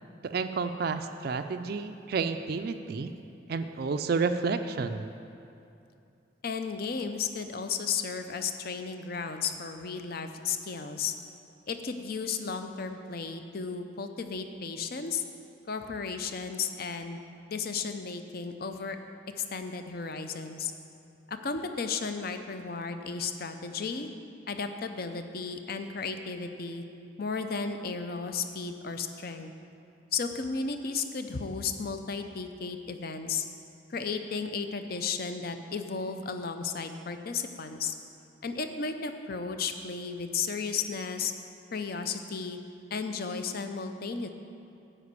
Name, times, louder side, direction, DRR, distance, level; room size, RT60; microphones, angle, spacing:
voice 1, 0.2-3.1 3.5-5.1, right 4 dB, 50° right, 8 dB, 0.4 m, -30 dB
voice 2, 6.4-11.1 11.7-15.2 15.7-17.2 17.5-19.0 19.3-20.7 21.3-24.1 24.5-26.8 27.2-29.5 30.1-33.5 33.9-37.9 38.4-41.3 41.7-42.6 42.9-44.3, left 5 dB, 50° left, 7 dB, 0.6 m, -34 dB
9.9 x 5.1 x 8.2 m, 2.7 s
head